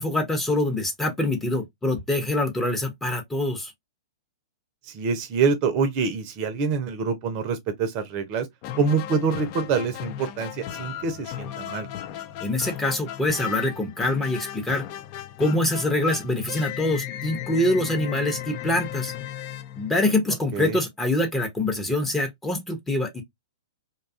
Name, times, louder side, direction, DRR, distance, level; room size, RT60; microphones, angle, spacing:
voice 1, 0.0-3.7 12.4-14.8 15.4-19.1 19.8-23.2, left 1 dB, 10° left, 0.7 m, -25 dB
voice 2, 4.8-8.5 8.8-11.9 20.5-20.8, right 5 dB, 35° right, 0.6 m, -26 dB
sound 1, 8.6-20.5, left 11 dB, 40° left, 0.3 m, -36 dB
2.6 x 2.3 x 2.4 m
figure-of-eight pair, 110°, 2 cm